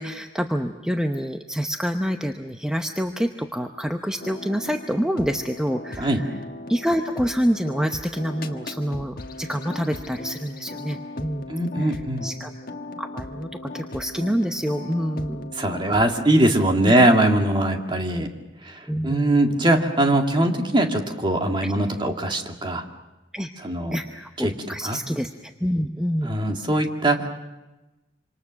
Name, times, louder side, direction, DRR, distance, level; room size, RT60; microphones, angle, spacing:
voice 1, 0.0-6.4 6.7-12.5 13.0-15.5 16.8-17.0 17.7-17.8 18.9-19.5 21.6-21.7 23.3-23.5 23.9-26.3, equal, 5° right, 4 dB, 0.8 m, -27 dB
sound 1, 4.2-16.3, left 2 dB, 50° left, 1.4 m, -38 dB
voice 2, 11.5-12.3 15.6-18.3 18.7-18.8 19.0-22.8 23.6-24.0 24.4-24.5 24.8-25.0 26.2-27.3, right 1 dB, 25° right, 3 dB, 2.0 m, -21 dB
26.5 x 26.5 x 6.4 m, 1.0 s
head